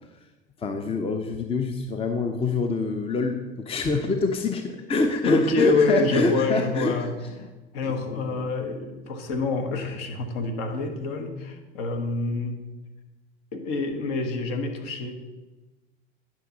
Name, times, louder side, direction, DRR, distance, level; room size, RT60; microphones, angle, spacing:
voice 1, 0.6-6.9 7.8-8.5, left 3 dB, 20° left, 6 dB, 0.7 m, -26 dB
voice 2, 5.3-7.1 7.7-12.6 13.5-15.1, left 3 dB, 55° left, 4 dB, 1.5 m, -26 dB
11.0 x 6.1 x 4.0 m, 1.2 s
figure-of-eight pair, 75°, 30 cm